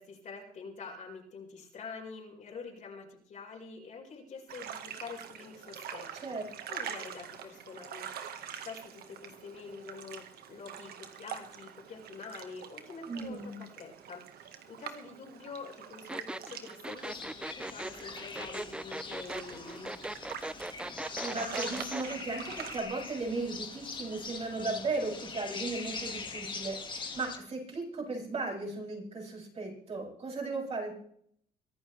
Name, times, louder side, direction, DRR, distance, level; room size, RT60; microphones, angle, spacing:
voice 1, 0.0-6.1 6.7-20.0, left 4 dB, 45° left, -2 dB, 5.2 m, -46 dB
sound 1, 4.5-22.8, right 8 dB, 65° right, 1.8 m, -45 dB
voice 2, 13.1-13.6 21.1-30.9, right 3 dB, 40° right, -4 dB, 7.7 m, -36 dB
sound 2, 16.1-22.1, right 1 dB, 5° right, 0.5 m, -39 dB
sound 3, 17.0-27.4, left 4 dB, 30° left, 2.2 m, -42 dB
23.5 x 11.5 x 3.5 m, 0.66 s
cardioid pair, 110°, 17 cm